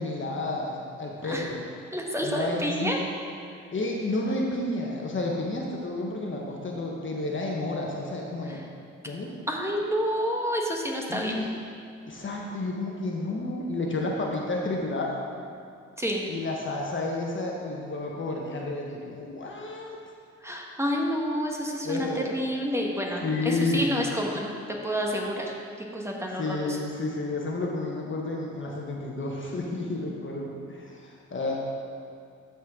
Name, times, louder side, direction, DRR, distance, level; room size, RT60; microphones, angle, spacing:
voice 1, 0.0-1.7 2.2-2.9 3.7-8.6 9.0-9.3 11.1-11.5 12.1-15.2 16.3-20.0 21.8-22.3 23.2-24.0 26.4-31.5, left 2 dB, 40° left, -1 dB, 1.3 m, -31 dB
voice 2, 1.9-3.0 8.5-8.6 9.5-11.4 16.0-16.2 20.4-24.5 24.8-25.5 25.9-26.8, equal, 10° right, -1 dB, 1.5 m, -29 dB
13.0 x 4.4 x 3.7 m, 2.4 s
hypercardioid pair, 50°, 31 cm